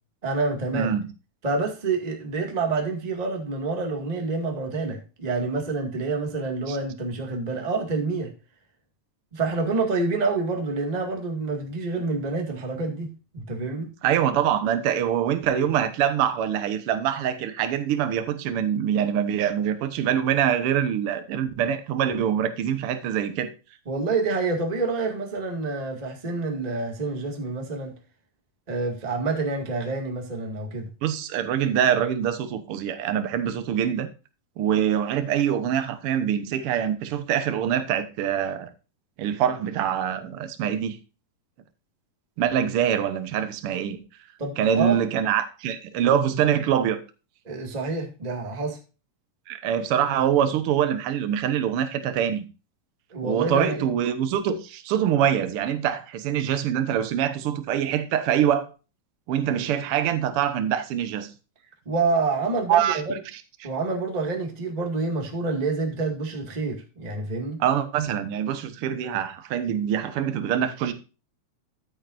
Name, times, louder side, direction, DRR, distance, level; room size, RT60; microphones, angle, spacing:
voice 1, 0.2-0.9 1.4-8.3 9.3-13.1 13.3-13.9 23.8-27.9 28.7-30.9 44.4-45.0 47.4-48.8 53.1-53.9 61.8-63.2 63.6-67.6, right 3 dB, 20° right, 1.2 m, -27 dB
voice 2, 0.7-1.1 6.7-6.8 14.0-23.5 31.0-34.1 34.6-38.7 39.2-41.0 42.4-44.0 44.6-47.0 49.5-52.4 53.2-58.7 59.3-61.3 62.7-63.2 67.6-70.9, right 9 dB, 80° right, 1.2 m, -24 dB
13.0 x 7.9 x 2.5 m
omnidirectional pair, 4.0 m